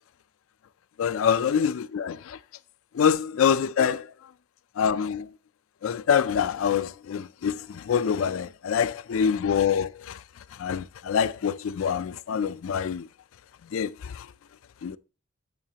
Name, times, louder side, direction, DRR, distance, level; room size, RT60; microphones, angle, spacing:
voice 1, 1.0-2.4 2.9-4.3 4.8-5.3 5.8-13.1 13.7-14.3 14.8-15.0, left 7 dB, 80° left, 0.4 m, -26 dB
14.5 x 5.7 x 2.8 m
head